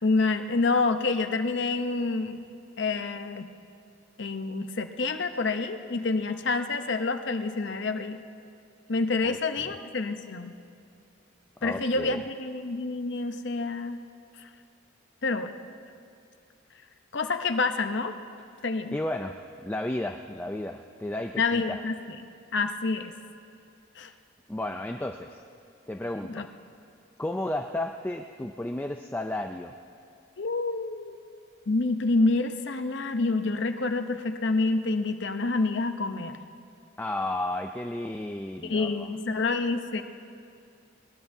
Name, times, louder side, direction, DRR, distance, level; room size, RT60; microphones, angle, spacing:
voice 1, 0.0-2.4 2.8-3.5 4.2-8.2 8.9-10.5 11.6-14.0 15.2-15.5 17.1-18.1 18.6-19.0 21.4-21.9 22.5-23.1 24.0-24.1 26.3-26.5 30.4-31.2 31.7-36.4 38.6-40.0, left 3 dB, 60° left, 7 dB, 0.8 m, -27 dB
voice 2, 9.2-9.7 11.6-12.2 18.9-21.8 24.5-25.4 25.9-26.5 27.2-29.8 37.0-39.1, left 1 dB, 10° left, 4 dB, 0.3 m, -33 dB
21.0 x 20.0 x 2.7 m, 2.4 s
head